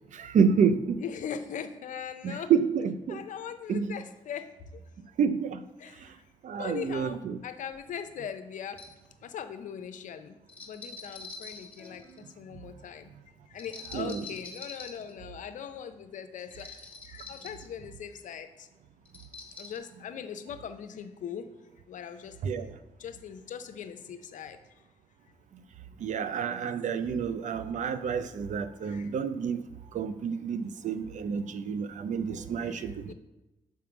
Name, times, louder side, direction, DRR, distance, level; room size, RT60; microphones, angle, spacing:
voice 1, 0.1-1.0 2.2-3.2 3.7-3.9 5.2-5.6 6.4-7.4 13.9-14.2 22.4-22.7 26.0-29.6 29.9-33.1, right 6 dB, 65° right, 11 dB, 0.5 m, -29 dB
voice 2, 1.0-2.5 3.1-4.5 5.8-6.0 6.5-8.8 9.2-10.4 10.7-13.1 13.5-18.7 19.6-21.5 21.9-22.4 23.0-24.6 27.0-27.1 28.9-29.1 32.6-33.1, left 8 dB, 70° left, 9 dB, 0.6 m, -40 dB
sound 1, 7.7-7.8 8.7-9.0 10.5-12.3 13.6-15.1 16.5-17.7 19.0-19.8, left 3 dB, 10° left, 1.4 m, -45 dB
5.9 x 3.7 x 5.9 m, 1.0 s
supercardioid pair, 55°, 13 cm